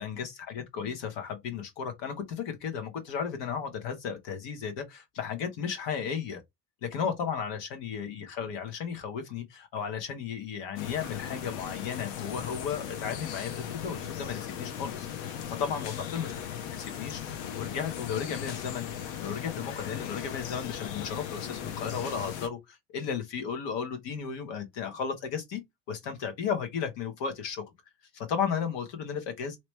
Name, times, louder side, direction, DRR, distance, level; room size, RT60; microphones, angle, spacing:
voice 1, 0.0-6.4 6.8-16.3 16.7-25.6 25.9-27.6 28.1-29.6, left 7 dB, 70° left, 1.2 m, -34 dB
sound 1, 10.8-22.5, left 9 dB, 90° left, 0.9 m, -38 dB
3.1 x 3.0 x 3.2 m
cardioid pair, 100°, 45 cm